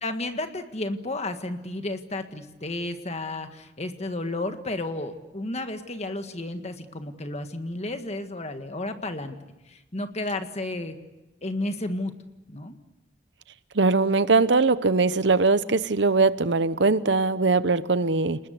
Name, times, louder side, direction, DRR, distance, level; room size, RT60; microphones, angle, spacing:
voice 1, 0.0-9.4 9.7-11.0 11.4-12.1 12.5-12.8, left 2 dB, 35° left, 7 dB, 1.7 m, -32 dB
voice 2, 13.7-18.4, right 3 dB, 65° right, 15 dB, 0.8 m, -21 dB
29.5 x 20.5 x 8.2 m, 1.0 s
head